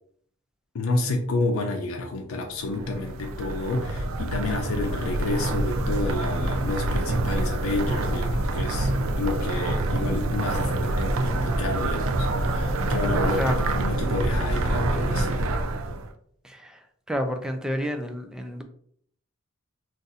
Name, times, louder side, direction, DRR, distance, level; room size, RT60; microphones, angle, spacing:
voice 1, 0.7-8.9 9.2-15.5, left 2 dB, 90° left, 3 dB, 0.5 m, -30 dB
sound 1, 2.6-16.1, right 2 dB, 70° right, 0.4 m, -26 dB
voice 2, 16.4-18.6, equal, 5° right, 5 dB, 0.3 m, -30 dB
2.5 x 2.5 x 3.9 m, 0.62 s
head